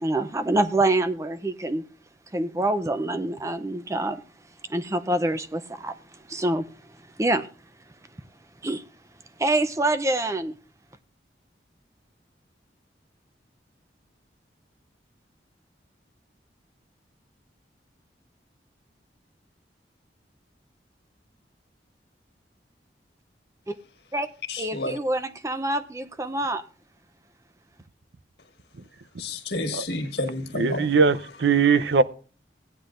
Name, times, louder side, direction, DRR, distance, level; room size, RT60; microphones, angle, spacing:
voice 1, 0.0-1.9 2.3-4.2 4.7-6.7 7.2-7.5 8.6-8.8 9.4-10.5 23.7-23.8 24.1-24.3 24.6-26.6, right 2 dB, 15° right, 0.5 m, -26 dB
voice 2, 24.5-25.0 29.2-30.8, left 2 dB, 70° left, 1.7 m, -30 dB
voice 3, 30.5-32.0, right 5 dB, 90° right, 0.6 m, -20 dB
16.5 x 9.7 x 2.5 m
head